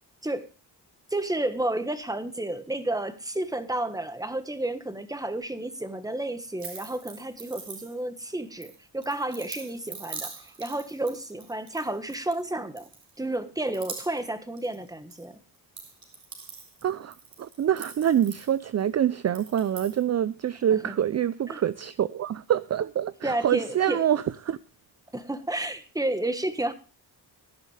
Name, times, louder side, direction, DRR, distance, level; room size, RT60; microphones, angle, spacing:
voice 1, 1.1-12.9 13.2-15.4 20.7-21.0 21.5-21.6 23.2-24.0 25.1-26.7, right 1 dB, 10° right, 1.4 m, -31 dB
sound 1, 6.6-8.2 8.6-12.4 12.8-13.4 13.7-15.2 15.5-18.9 19.3-20.0, right 5 dB, 60° right, 4.2 m, -43 dB
voice 2, 16.8-24.6, right 10 dB, 40° right, 0.5 m, -26 dB
16.5 x 11.0 x 3.3 m
wide cardioid pair, 115°, 40 cm